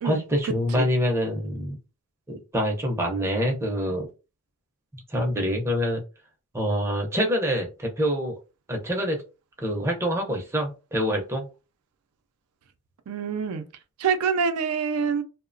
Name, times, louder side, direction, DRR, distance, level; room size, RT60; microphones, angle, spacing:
voice 1, 0.0-1.8 2.3-4.1 4.9-6.0 6.5-8.4 8.7-9.2 9.6-11.5, equal, 10° right, 0.5 m, -26 dB
voice 2, 13.1-13.6 14.0-15.2, right 6 dB, 85° right, 0.4 m, -25 dB
2.8 x 2.0 x 2.5 m
head